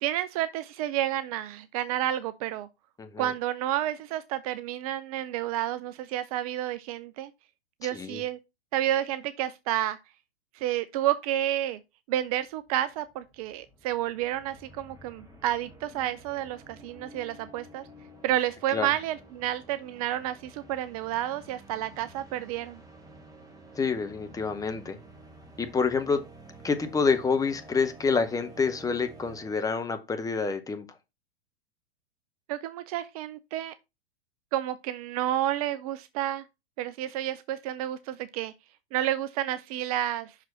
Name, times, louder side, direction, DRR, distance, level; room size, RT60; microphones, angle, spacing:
voice 1, 0.0-2.7 3.2-7.3 7.8-8.4 8.7-10.0 10.5-11.8 12.1-17.9 18.2-22.8 32.5-33.7 34.5-36.4 36.8-38.5 38.9-40.3, right 12 dB, 35° right, 0.4 m, -30 dB
voice 2, 3.0-3.3 7.8-8.2 18.7-18.9 23.7-25.0 25.6-26.2 26.6-30.9, left 5 dB, 10° left, 0.8 m, -28 dB
sound 1, 12.3-12.4 12.6-30.0, right 1 dB, 10° right, 1.6 m, -51 dB
5.9 x 4.8 x 4.2 m
figure-of-eight pair, 100°, 32 cm